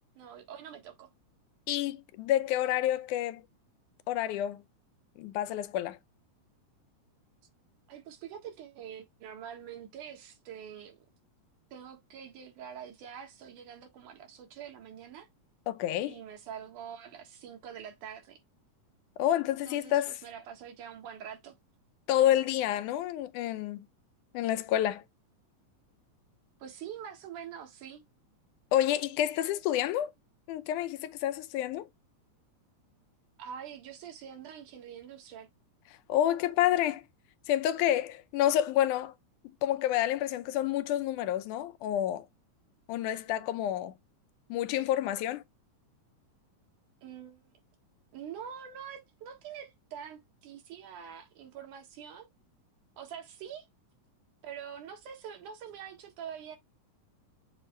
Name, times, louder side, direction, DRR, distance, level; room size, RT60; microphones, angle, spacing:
voice 1, 0.2-1.1 7.9-11.1 11.7-15.3 16.1-18.4 19.6-21.5 26.6-28.0 33.4-35.5 47.0-47.5 48.1-52.3 53.0-53.7 54.4-56.6, right 8 dB, 85° right, 3.1 m, -45 dB
voice 2, 1.7-3.4 4.1-4.6 5.2-6.0 15.7-16.1 19.2-20.2 22.1-23.9 24.3-25.0 28.7-30.1 30.5-31.9 36.1-37.0 37.5-39.1 39.6-42.3 42.9-43.9 44.5-45.4, left 12 dB, 85° left, 2.2 m, -29 dB
7.4 x 3.1 x 4.5 m
omnidirectional pair, 3.5 m